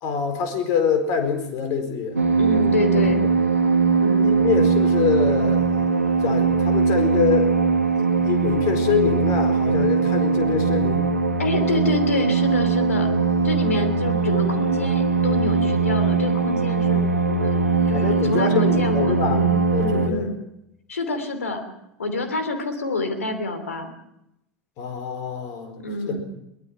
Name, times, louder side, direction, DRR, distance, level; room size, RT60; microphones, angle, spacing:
voice 1, 0.0-2.2 4.2-5.9 6.2-7.5 8.0-11.1 17.9-19.4 19.7-20.3 24.8-25.7 26.1-26.2, left 7 dB, 50° left, 8 dB, 4.5 m, -25 dB
sound 1, 2.2-20.1, right 4 dB, 90° right, 1.7 m, -20 dB
voice 2, 2.4-3.2 4.0-4.3 11.4-13.1 13.4-19.5 19.8-20.3 20.9-21.6 22.0-23.9 25.8-26.2, left 2 dB, 80° left, 8 dB, 2.9 m, -27 dB
22.5 x 20.5 x 5.9 m, 0.83 s
figure-of-eight pair, 80°, 8 cm